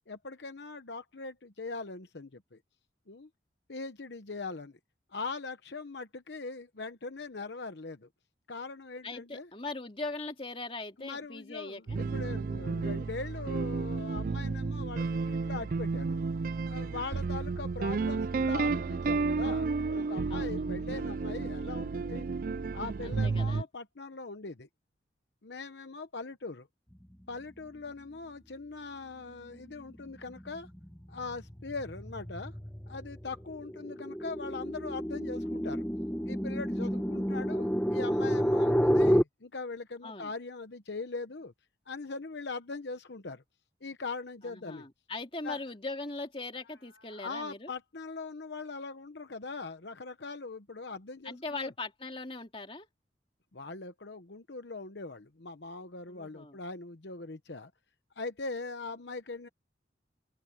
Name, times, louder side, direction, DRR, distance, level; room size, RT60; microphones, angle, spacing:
voice 1, 0.1-2.6 3.1-3.3 3.7-4.8 5.1-8.1 8.5-9.5 11.0-16.2 16.6-22.3 22.7-24.7 25.4-26.7 27.3-30.7 31.1-32.5 32.9-35.8 36.3-41.5 41.9-43.4 43.8-44.9 45.4-45.6 47.1-51.7 53.5-57.7 58.2-59.5, left 3 dB, 65° left, 1.0 m, -41 dB
voice 2, 9.0-12.0 20.3-20.8 23.0-23.7 40.0-40.3 44.4-47.7 51.2-52.9 56.1-56.6, left 3 dB, 30° left, 2.8 m, -40 dB
sound 1, 11.9-23.6, right 4 dB, 50° right, 0.4 m, -32 dB
sound 2, 29.6-29.9 30.3-39.2, equal, 10° left, 1.3 m, -30 dB
open air
head